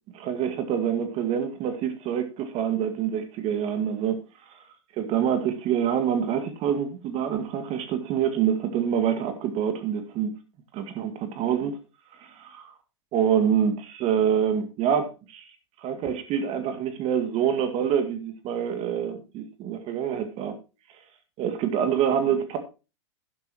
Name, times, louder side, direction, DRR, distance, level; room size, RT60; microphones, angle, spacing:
voice 1, 0.1-4.2 5.0-10.4 10.7-11.8 12.2-12.7 13.1-15.5 15.8-20.6 21.4-22.6, right 8 dB, 40° right, 2.0 m, -26 dB
11.5 x 11.0 x 3.0 m
hypercardioid pair, 105°, 16 cm